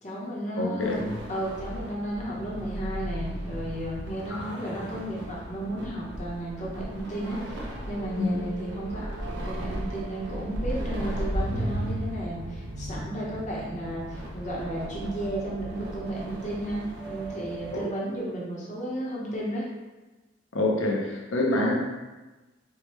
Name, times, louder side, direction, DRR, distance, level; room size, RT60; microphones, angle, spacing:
voice 1, 0.0-19.7, right 1 dB, 40° left, -5 dB, 0.9 m, -33 dB
voice 2, 0.6-1.0 4.3-4.5 8.2-8.4 17.7-17.9 20.5-21.7, left 2 dB, 90° left, 0 dB, 0.6 m, -26 dB
sound 1, 0.8-17.9, equal, 60° right, 0.6 m, -36 dB
sound 2, 3.5-18.2, right 3 dB, 25° right, 0.8 m, -45 dB
4.6 x 2.2 x 3.1 m, 1.2 s
head